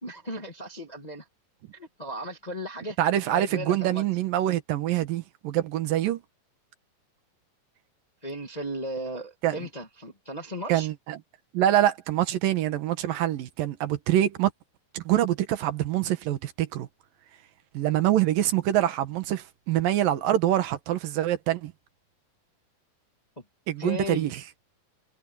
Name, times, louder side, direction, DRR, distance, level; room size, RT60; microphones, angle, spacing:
voice 1, 0.0-1.2 1.7-3.0 3.3-4.0 8.2-10.9 23.8-24.3, equal, 25° left, 0.8 m, -36 dB
voice 2, 3.0-6.2 9.4-9.6 10.7-11.2 11.5-14.5 14.9-16.9 17.7-21.7 23.7-24.4, right 12 dB, 75° right, 3.0 m, -25 dB
omnidirectional pair, 4.0 m